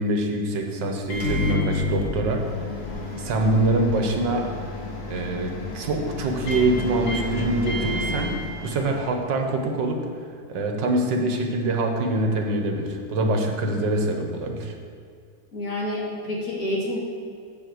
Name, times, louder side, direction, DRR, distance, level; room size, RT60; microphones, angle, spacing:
voice 1, 0.0-2.4 3.2-4.5 5.1-8.3 8.6-10.0 10.5-14.7, right 2 dB, 75° right, 3 dB, 1.8 m, -24 dB
Microwave oven, 1.0-9.2, left 2 dB, 70° left, 2.0 m, -31 dB
voice 2, 15.5-17.0, left 1 dB, 50° left, -4 dB, 2.5 m, -28 dB
7.7 x 6.5 x 7.8 m, 2.3 s
omnidirectional pair, 2.0 m